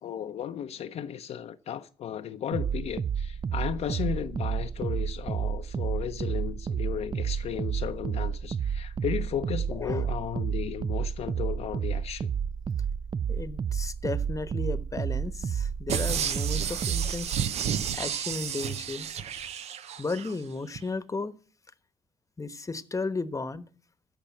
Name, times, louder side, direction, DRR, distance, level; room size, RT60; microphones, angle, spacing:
voice 1, 0.0-12.3, left 9 dB, 65° left, 0.7 m, -35 dB
sound 1, 2.5-17.3, right 7 dB, 40° right, 0.5 m, -31 dB
voice 2, 9.7-10.0 13.3-17.4 17.9-19.1 20.0-21.3 22.4-23.7, left 3 dB, 25° left, 1.1 m, -34 dB
sound 2, 15.9-20.3 20.8-20.9, right 8 dB, 65° right, 0.7 m, -32 dB
13.5 x 5.3 x 8.8 m
hypercardioid pair, 45°, 12 cm